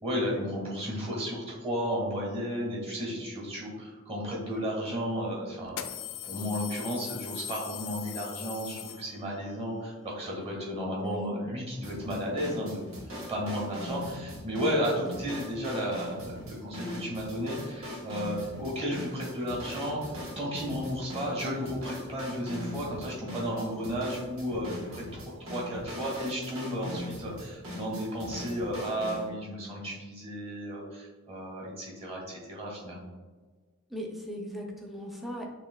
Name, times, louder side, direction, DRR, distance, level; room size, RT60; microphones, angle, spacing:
voice 1, 0.0-5.8 6.2-12.9 13.3-20.0 20.3-33.1, equal, 30° right, -3 dB, 1.4 m, -33 dB
sound 1, 4.6-4.7 5.7-9.5, left 10 dB, 70° left, 0.4 m, -40 dB
voice 2, 11.0-11.4 15.1-15.2 33.9-35.5, left 1 dB, ahead, 0 dB, 0.5 m, -38 dB
sound 2, 11.8-29.3, left 1 dB, 85° right, 1.1 m, -41 dB
6.5 x 3.0 x 2.2 m, 1.3 s
head